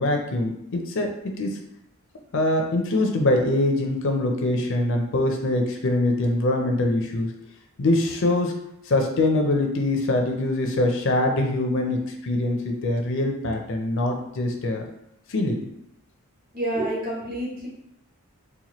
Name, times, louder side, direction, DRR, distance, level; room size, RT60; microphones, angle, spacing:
voice 1, 0.0-1.6 2.3-7.3 7.8-8.5 8.9-14.9 15.3-15.6, left 2 dB, 60° left, 3 dB, 0.5 m, -23 dB
voice 2, 16.5-17.7, right 1 dB, 40° right, -4 dB, 1.2 m, -28 dB
4.2 x 2.2 x 3.0 m, 0.77 s
head